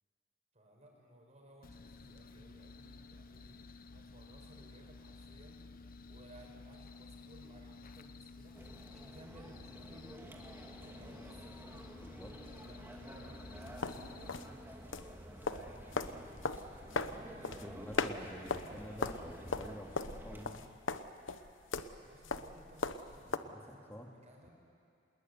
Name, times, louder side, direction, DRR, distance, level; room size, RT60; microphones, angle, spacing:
voice 1, 0.5-5.6 6.0-11.9 12.4-18.8 21.7-24.5, right 1 dB, 35° right, 0 dB, 5.6 m, -60 dB
sound 1, 1.6-14.4, left 3 dB, 50° left, 0.8 m, -53 dB
sound 2, 8.5-20.4, equal, 10° right, 2.6 m, -51 dB
voice 2, 11.9-12.4 17.6-20.7 23.2-24.1 24.4-24.5, equal, 10° left, 2 dB, 2.3 m, -49 dB
sound 3, 13.6-23.4, left 4 dB, 80° left, 1.0 m, -38 dB
26.0 x 20.5 x 9.7 m, 2.4 s
head